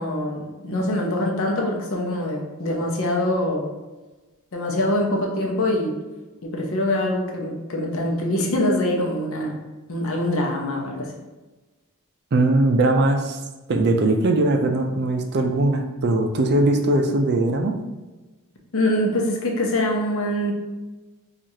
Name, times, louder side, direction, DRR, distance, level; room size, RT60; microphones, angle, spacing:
voice 1, 0.0-3.7 4.5-6.0 6.4-11.1 18.7-20.5, left 1 dB, 65° left, 0 dB, 0.7 m, -24 dB
voice 2, 12.3-13.4 13.7-17.8, right 2 dB, 50° right, 4 dB, 0.4 m, -20 dB
4.6 x 2.4 x 2.8 m, 1.2 s
head